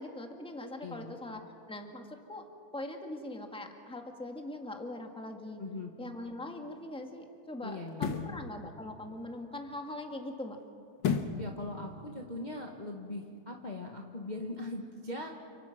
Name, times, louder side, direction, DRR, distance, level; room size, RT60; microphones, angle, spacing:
voice 1, 0.0-1.4 1.7-2.5 2.7-5.6 6.0-10.6, left 1 dB, 5° left, 3 dB, 1.8 m, -41 dB
voice 2, 0.8-1.2 5.6-5.9 7.6-8.3 11.3-15.3, left 2 dB, 25° left, 1 dB, 1.5 m, -40 dB
sound 1, 6.0-6.2 7.9-8.4 11.0-11.5 11.9-12.0, left 6 dB, 65° left, 2.0 m, -31 dB
29.5 x 27.5 x 6.1 m, 2.6 s
omnidirectional pair, 2.2 m